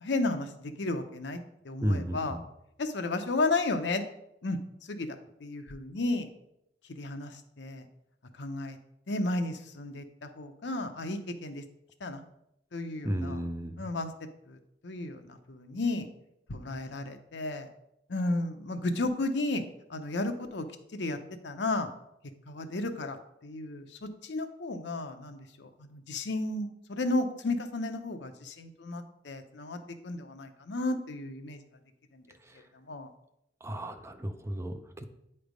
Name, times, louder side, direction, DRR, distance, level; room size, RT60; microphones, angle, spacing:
voice 1, 0.0-2.4 2.8-4.0 4.4-4.6 4.9-5.1 5.4-6.3 7.0-7.9 8.4-8.8 9.1-11.6 12.0-12.2 12.7-13.4 13.8-14.1 14.5-16.1 16.5-17.7 18.1-19.6 19.9-20.6 20.9-21.2 21.4-21.9 22.5-31.6 32.1-32.2 32.9-33.1, left 2 dB, 65° left, 8 dB, 0.7 m, -33 dB
voice 2, 1.8-2.4 13.0-13.8 32.5-32.6 33.6-35.0, equal, 15° right, 7 dB, 0.4 m, -33 dB
8.9 x 3.3 x 5.1 m, 0.80 s
head